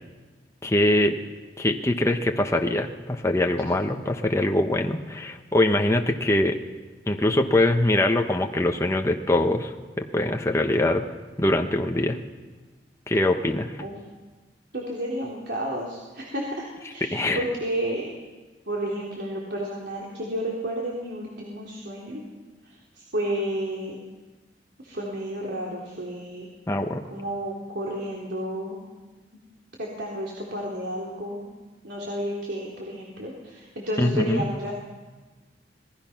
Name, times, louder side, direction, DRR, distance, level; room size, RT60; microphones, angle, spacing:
voice 1, 0.6-1.2 1.6-6.6 7.1-11.1 11.4-12.2 13.1-13.8 17.1-17.4 26.7-27.0 34.0-34.4, left 1 dB, 15° left, 3 dB, 1.1 m, -23 dB
voice 2, 11.6-11.9 13.8-13.9 14.7-18.1 18.7-22.2 22.6-24.0 24.8-26.5 27.1-28.8 29.8-31.4 31.8-34.7, right 1 dB, 75° right, -3 dB, 3.4 m, -31 dB
26.5 x 19.5 x 5.9 m, 1.3 s
head